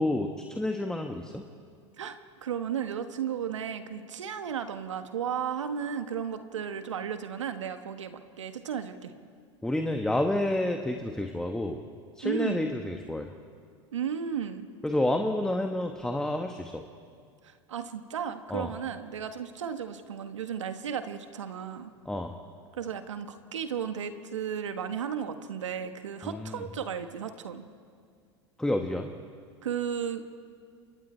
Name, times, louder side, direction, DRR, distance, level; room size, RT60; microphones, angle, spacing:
voice 1, 0.0-1.4 9.6-11.8 12.2-13.3 14.8-16.8 18.5-18.7 22.0-22.3 26.2-26.6 28.6-29.1, left 1 dB, 5° left, 4 dB, 1.3 m, -29 dB
voice 2, 2.0-9.1 12.2-12.7 13.9-14.7 17.4-21.9 22.7-27.6 29.6-30.4, right 8 dB, 85° right, 9 dB, 1.4 m, -34 dB
28.0 x 24.0 x 4.5 m, 2.1 s
hypercardioid pair, 95°, 15 cm